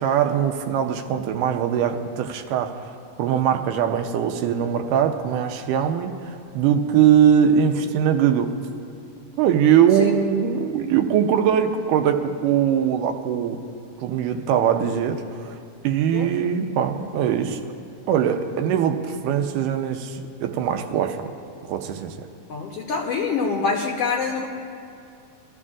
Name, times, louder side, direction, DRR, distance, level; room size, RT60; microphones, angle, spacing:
voice 1, 0.0-2.9 3.2-8.5 9.4-13.6 14.0-15.5 15.8-17.6 18.1-21.3 21.7-22.1, right 8 dB, 85° right, 6 dB, 2.2 m, -21 dB
voice 2, 22.5-24.5, left 5 dB, 75° left, 0 dB, 1.4 m, -25 dB
22.0 x 13.5 x 2.4 m, 2.4 s
omnidirectional pair, 3.8 m